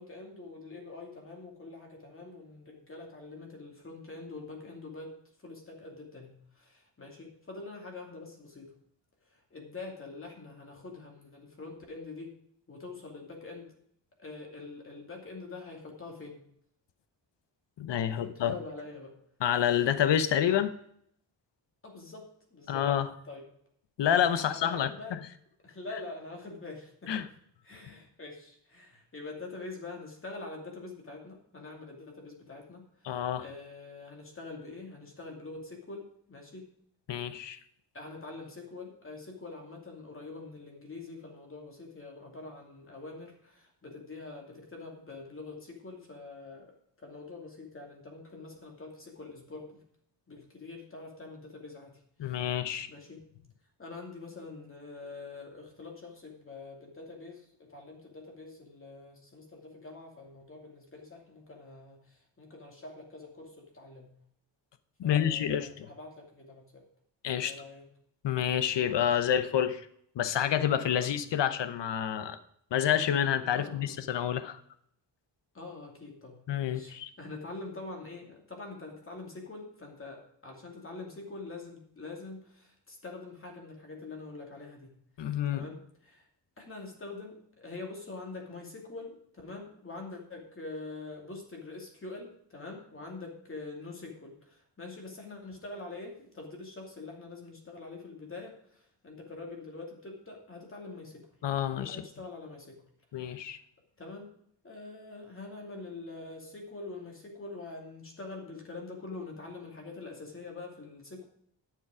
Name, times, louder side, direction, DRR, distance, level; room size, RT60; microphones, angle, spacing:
voice 1, 0.0-5.1 5.4-8.7 9.3-12.3 12.7-13.7 14.2-16.4 18.1-19.1 21.8-22.2 22.5-22.9 23.3-23.5 24.4-25.2 25.6-27.2 27.6-36.7 37.9-46.7 47.0-49.8 50.3-52.5 52.9-53.2 53.8-64.1 65.0-66.8 67.4-67.8 69.0-69.2 71.0-71.2 73.5-74.0 75.5-84.9 85.5-86.2 86.6-101.3 101.7-102.8 103.2-103.3 104.0-104.3 104.6-111.3, left 3 dB, 30° left, 0 dB, 2.6 m, -45 dB
voice 2, 17.8-18.5 19.4-20.7 22.7-23.1 24.0-25.2 27.1-27.3 33.0-33.4 37.1-37.6 52.2-52.9 65.0-65.9 67.2-67.6 68.2-69.9 70.2-72.4 72.7-74.6 76.5-77.1 85.2-85.6 101.4-102.0 103.1-103.6, left 9 dB, 70° left, 12 dB, 0.9 m, -28 dB
12.0 x 7.1 x 5.0 m, 0.69 s
wide cardioid pair, 165°, 44 cm